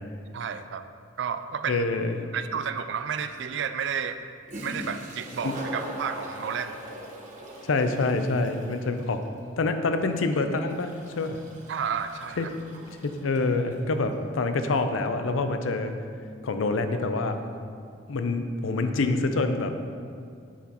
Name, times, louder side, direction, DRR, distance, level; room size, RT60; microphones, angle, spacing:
voice 1, 0.3-0.8 1.2-1.8 2.3-4.3 4.6-6.8 11.7-12.5, right 7 dB, 60° right, 10 dB, 0.3 m, -31 dB
voice 2, 1.7-2.2 5.4-5.5 7.6-9.2 9.6-11.4 12.4-12.5 13.0-15.9 16.4-17.4 18.1-19.7, left 3 dB, 85° left, 8 dB, 0.5 m, -26 dB
Toilet flush, 4.5-13.9, equal, 40° right, 1.1 m, -41 dB
7.2 x 7.0 x 2.9 m, 2.3 s
head